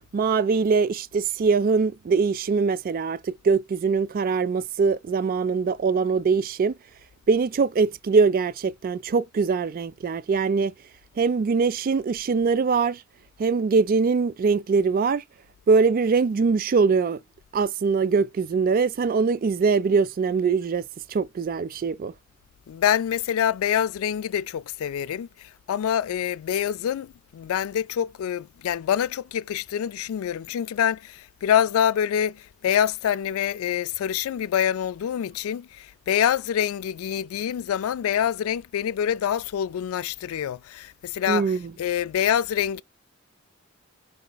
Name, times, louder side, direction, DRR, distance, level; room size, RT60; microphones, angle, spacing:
voice 1, 0.1-6.8 7.3-10.7 11.2-13.0 13.4-15.2 15.7-17.2 17.5-22.1 41.3-41.7, right 5 dB, 40° right, 0.3 m, -22 dB
voice 2, 22.7-41.5 41.8-42.8, left 9 dB, 75° left, 0.3 m, -26 dB
4.9 x 3.2 x 2.3 m
head